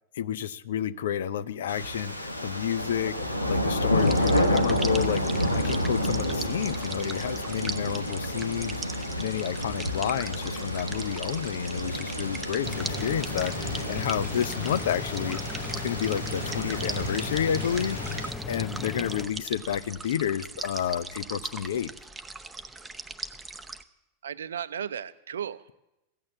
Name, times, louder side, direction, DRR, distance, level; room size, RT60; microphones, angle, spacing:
voice 1, 0.1-21.9, left 9 dB, 60° left, 15 dB, 0.6 m, -30 dB
sound 1, 1.7-18.3, equal, 90° left, 1.3 m, -30 dB
sound 2, 4.0-23.8, right 3 dB, 10° right, 0.8 m, -40 dB
sound 3, 12.6-19.2, left 4 dB, 15° left, 1.2 m, -36 dB
voice 2, 24.2-25.7, right 8 dB, 70° right, 16 dB, 0.6 m, -35 dB
15.0 x 8.7 x 7.3 m, 0.91 s
figure-of-eight pair, 90°, 0 cm